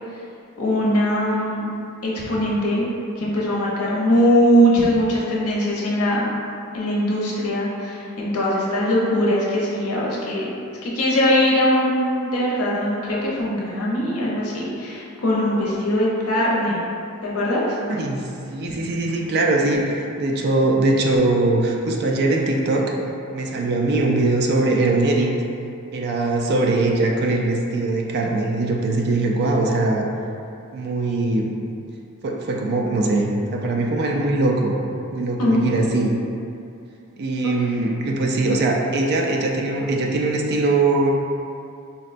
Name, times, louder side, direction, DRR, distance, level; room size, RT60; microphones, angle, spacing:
voice 1, 0.6-1.7 2.0-2.9 3.2-6.3 6.7-10.5 10.8-16.8 17.2-17.8 35.4-35.6 37.4-37.5, equal, 80° left, -5 dB, 0.7 m, -21 dB
voice 2, 17.9-18.2 18.5-22.9 23.3-25.3 25.9-30.1 30.7-31.5 32.2-34.8 35.1-36.1 37.2-41.1, right 2 dB, 50° right, 0 dB, 0.3 m, -21 dB
4.0 x 2.1 x 2.5 m, 2.5 s
head